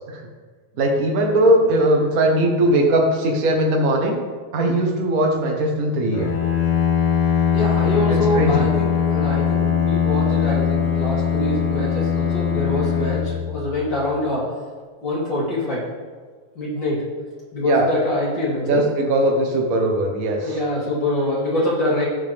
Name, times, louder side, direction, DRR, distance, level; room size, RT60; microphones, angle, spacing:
voice 1, 0.8-4.2 4.5-6.3 8.1-8.7 17.6-17.9 18.6-20.5, right 1 dB, 75° right, 1 dB, 0.8 m, -19 dB
Bowed string instrument, 6.1-14.1, left 8 dB, 60° left, 1.5 m, -21 dB
voice 2, 7.5-14.5 15.0-15.8 16.6-17.0 17.5-18.8 20.4-22.0, left 1 dB, 35° left, -7 dB, 3.5 m, -24 dB
16.5 x 5.9 x 3.5 m, 1.5 s
omnidirectional pair, 3.6 m